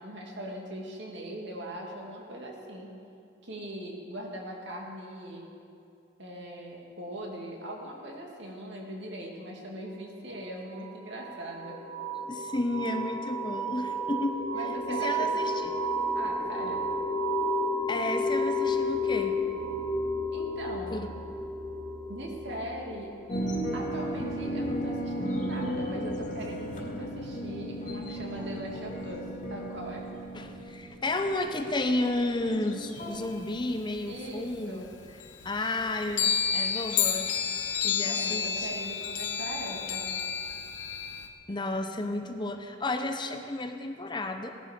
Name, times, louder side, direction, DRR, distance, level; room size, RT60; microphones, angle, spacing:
voice 1, 0.0-2.9 3.4-5.5 6.2-11.8 14.5-15.3 16.1-16.9 20.3-21.0 22.1-23.2 23.7-29.2 29.5-30.0 34.0-34.9 37.8-40.1, right 1 dB, 70° right, -1 dB, 2.5 m, -40 dB
sound 1, 10.7-25.1, equal, 15° right, 3.2 m, -32 dB
voice 2, 12.3-14.4 14.9-15.7 17.9-19.4 20.9-21.1 30.3-34.9 35.4-37.4 37.8-38.7 41.5-44.5, left 2 dB, 25° left, 6 dB, 0.7 m, -32 dB
sound 2, 23.3-33.3, equal, 40° left, 2.3 m, -35 dB
sound 3, 33.0-34.5 34.8-34.9 35.2-41.3, left 7 dB, 75° left, 1.1 m, -30 dB
17.0 x 11.0 x 5.2 m, 2.6 s
head